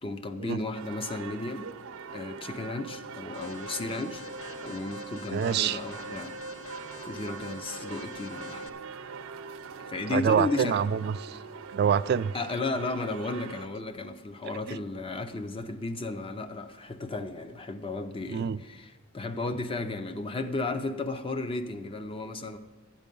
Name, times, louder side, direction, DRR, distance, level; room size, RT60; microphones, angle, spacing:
voice 1, 0.0-1.7 2.1-4.2 4.6-6.4 7.0-8.7 9.8-10.8 12.3-22.6, left 2 dB, 25° left, 9 dB, 0.6 m, -34 dB
sound 1, 0.7-13.7, right 5 dB, 90° right, 0.6 m, -42 dB
Alarm, 3.3-8.7, left 6 dB, 85° left, 0.7 m, -46 dB
voice 2, 5.3-5.8 10.1-11.4 11.7-12.3 14.7-14.8 18.3-18.6, right 7 dB, 50° right, 14 dB, 0.3 m, -26 dB
12.0 x 9.1 x 5.3 m, 1.4 s
head